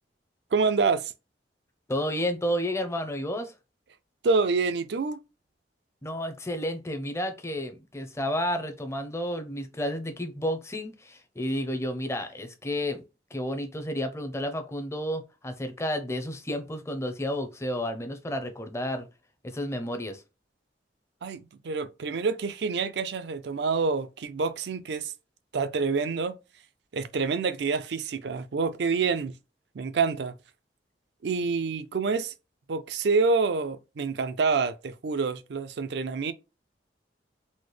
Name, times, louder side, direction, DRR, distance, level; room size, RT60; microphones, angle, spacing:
voice 1, 0.5-1.1 4.2-5.2 21.2-25.1 25.5-26.4 26.9-29.3 29.7-30.3 31.2-32.3 32.7-36.3, right 4 dB, 70° right, 0.4 m, -27 dB
voice 2, 1.9-3.5 6.0-13.0 13.3-19.1 19.4-20.2, equal, 15° left, 0.5 m, -31 dB
4.1 x 2.0 x 3.1 m
head